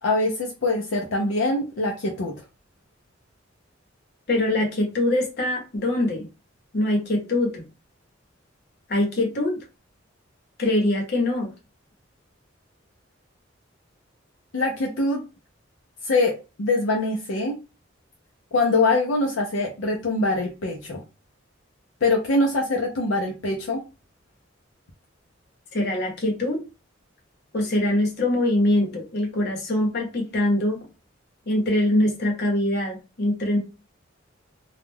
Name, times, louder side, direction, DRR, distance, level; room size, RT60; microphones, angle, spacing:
voice 1, 0.0-2.3 14.5-15.2 16.0-17.5 18.5-21.0 22.0-23.8, left 2 dB, 80° left, 0.5 m, -23 dB
voice 2, 4.3-6.3 6.7-7.6 8.9-9.6 10.6-11.5 25.7-26.6 27.5-30.8 31.5-33.6, left 1 dB, 55° left, 0.9 m, -23 dB
2.3 x 2.1 x 3.2 m
head